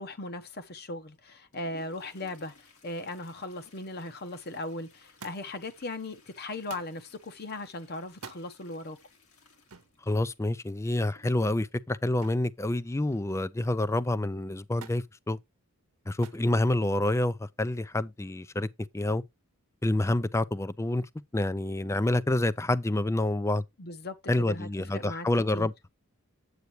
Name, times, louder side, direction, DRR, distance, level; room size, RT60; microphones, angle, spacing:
voice 1, 0.0-9.0 23.8-25.3 25.5-25.7, left 2 dB, 45° left, 1.0 m, -38 dB
Toilet flush, 1.1-13.1 15.0-15.1 15.4-15.5 16.3-16.4 17.0-17.3 17.7-17.9, left 3 dB, 75° left, 2.3 m, -60 dB
Thump thud, 5.2-5.7 6.7-7.0 8.1-8.5 9.7-10.0 12.2-12.5 12.9-13.4 14.8-15.1 16.2-16.5 17.4-17.9 18.9-19.0, right 6 dB, 85° right, 0.9 m, -48 dB
voice 2, 10.1-15.4 16.1-18.7 18.9-19.2 19.8-21.1 21.3-23.6 24.3-25.7, left 1 dB, 15° left, 0.4 m, -28 dB
8.1 x 8.1 x 3.0 m
head